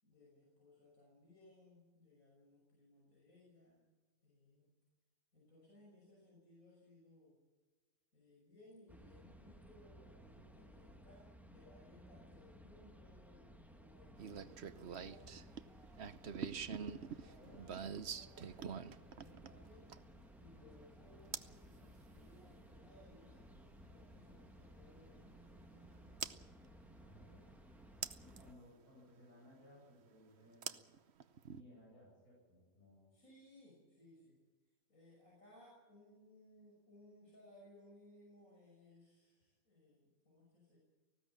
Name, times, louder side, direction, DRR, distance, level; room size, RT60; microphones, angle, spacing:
voice 1, 0.0-3.8 4.2-4.7 5.3-7.4 8.1-15.6 16.5-20.0 20.4-26.1 28.5-28.7 33.1-34.4 34.9-40.8, left 1 dB, 65° left, -4 dB, 6.5 m, -64 dB
sound 1, 8.9-28.5, equal, ahead, 1.2 m, -59 dB
sound 2, 14.2-20.2 21.3-21.6 23.5-23.6 26.2-26.4 28.0-28.4 30.6-31.6, right 7 dB, 55° right, 1.0 m, -45 dB
voice 2, 27.0-27.5 28.2-30.8 31.4-33.1, left 1 dB, 85° left, -3 dB, 8.7 m, -62 dB
19.0 x 16.0 x 8.8 m, 1.3 s
omnidirectional pair, 1.5 m